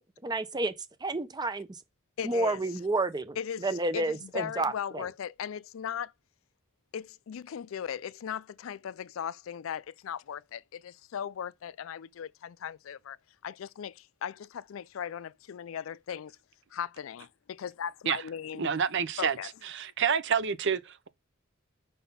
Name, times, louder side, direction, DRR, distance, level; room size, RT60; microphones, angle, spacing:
voice 1, 0.2-0.7 1.0-1.7 2.2-5.1, right 2 dB, 20° right, 0.7 m, -30 dB
voice 2, 2.2-2.6 3.4-6.1 6.9-13.2 13.4-16.4 16.7-18.7 19.2-19.5, left 8 dB, 75° left, 0.4 m, -38 dB
voice 3, 18.6-19.4 19.6-21.1, right 7 dB, 65° right, 0.7 m, -28 dB
5.4 x 4.1 x 5.5 m
head